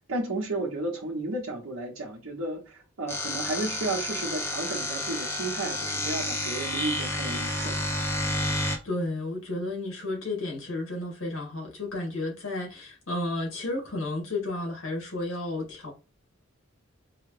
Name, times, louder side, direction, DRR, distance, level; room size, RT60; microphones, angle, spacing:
voice 1, 0.1-7.8, right 2 dB, 85° right, 1.1 m, -33 dB
sound 1, 3.1-8.8, left 1 dB, 10° left, 0.7 m, -30 dB
voice 2, 8.8-15.9, left 2 dB, 70° left, 1.9 m, -32 dB
4.8 x 2.3 x 3.3 m
head